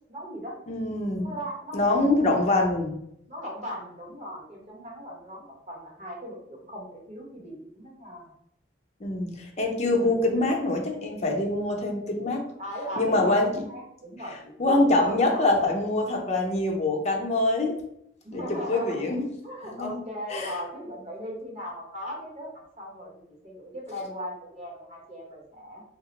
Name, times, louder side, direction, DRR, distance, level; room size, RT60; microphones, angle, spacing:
voice 1, 0.1-0.6 1.2-2.1 3.3-8.3 9.9-10.2 12.6-14.9 15.3-15.5 18.2-25.8, equal, 45° right, -3 dB, 1.1 m, -38 dB
voice 2, 0.7-1.3 1.7-2.9 9.0-12.4 13.0-13.5 14.6-17.8 18.3-19.2 19.6-20.0 20.3-20.5, left 2 dB, 40° left, 0 dB, 0.6 m, -24 dB
2.9 x 2.0 x 3.9 m, 0.74 s
head